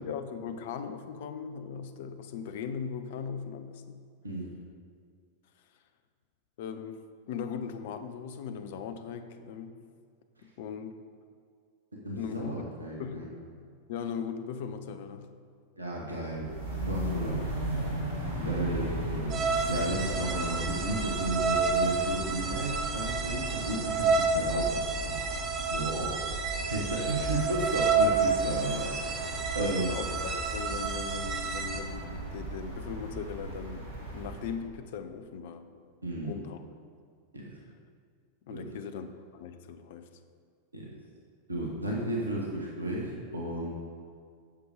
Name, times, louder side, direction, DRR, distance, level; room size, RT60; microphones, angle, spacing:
voice 1, 0.0-4.0 6.6-9.8 10.4-11.0 12.2-12.5 13.0-13.4 13.9-15.3 17.2-17.5 18.4-18.7 29.6-35.9 36.2-36.6 38.5-40.1, left 7 dB, 55° left, 9 dB, 0.7 m, -39 dB
voice 2, 12.0-13.3 15.8-16.5 16.9-17.4 18.3-25.4 25.7-29.9 36.0-36.4 37.3-37.5 38.5-38.6 40.7-40.8 41.5-43.7, right 1 dB, 80° right, -2 dB, 1.4 m, -34 dB
sound 1, 16.3-34.6, right 1 dB, 60° right, 2.0 m, -37 dB
sound 2, 19.3-31.8, right 4 dB, 30° right, 1.1 m, -30 dB
10.5 x 6.9 x 5.0 m, 2.2 s
figure-of-eight pair, 90°, 0 cm